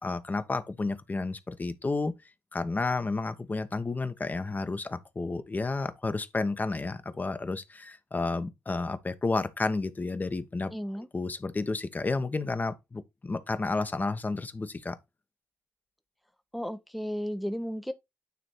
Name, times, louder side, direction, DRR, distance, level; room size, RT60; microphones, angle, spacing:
voice 1, 0.0-2.1 2.5-10.7 11.1-15.0, left 3 dB, 25° left, 1.0 m, -31 dB
voice 2, 10.7-11.1 16.5-17.9, equal, ahead, 0.8 m, -34 dB
9.4 x 3.2 x 4.2 m
hypercardioid pair, 45°, 6 cm